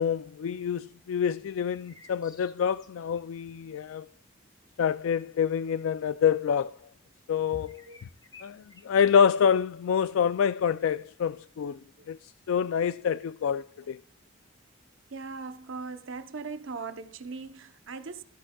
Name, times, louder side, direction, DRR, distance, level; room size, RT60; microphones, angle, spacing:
voice 1, 0.0-4.0 4.8-6.8 7.3-7.8 8.4-11.8 12.1-14.0, left 7 dB, 80° left, 0.3 m, -27 dB
sound 1, 1.8-3.2 7.6-9.2, left 3 dB, 20° left, 1.7 m, -54 dB
voice 2, 15.1-18.2, right 4 dB, 70° right, 0.8 m, -39 dB
15.0 x 9.8 x 2.3 m
head